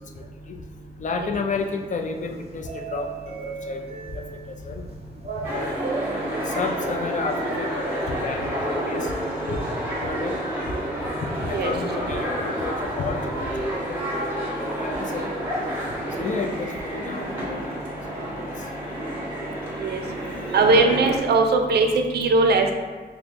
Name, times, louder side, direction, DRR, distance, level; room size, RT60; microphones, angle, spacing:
voice 1, 0.2-0.6 1.0-3.8 4.1-4.2 4.6-4.9 5.5-5.9 6.5-9.1 9.5-9.6 10.0-10.4 11.5-14.0 14.6-15.5 16.2-17.6, left 4 dB, 45° left, 4 dB, 0.4 m, -31 dB
sound 1, 1.5-8.5, right 3 dB, 35° right, 0.6 m, -37 dB
sound 2, 5.4-21.2, right 1 dB, 15° right, 1.4 m, -29 dB
voice 2, 20.5-22.7, right 3 dB, 70° right, 3 dB, 0.4 m, -19 dB
4.3 x 2.1 x 3.3 m, 1.4 s
cardioid pair, 90°, 17 cm